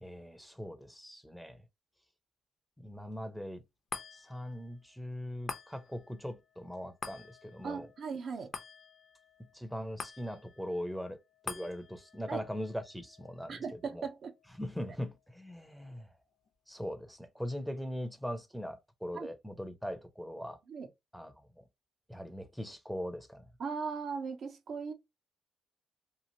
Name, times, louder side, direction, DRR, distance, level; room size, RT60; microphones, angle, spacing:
voice 1, 0.0-1.6 2.8-3.6 4.1-7.9 9.5-14.1 14.6-16.1 16.7-20.6 21.1-21.6 22.1-23.5, equal, ahead, 0.6 m, -41 dB
sound 1, 3.9-16.5 16.9-17.0, left 5 dB, 45° left, 0.6 m, -49 dB
voice 2, 7.6-8.5 12.3-12.4 13.5-14.3 19.1-19.3 20.7-20.9 23.6-24.9, right 5 dB, 60° right, 0.6 m, -38 dB
3.0 x 2.3 x 2.7 m
cardioid pair, 90°, 0 cm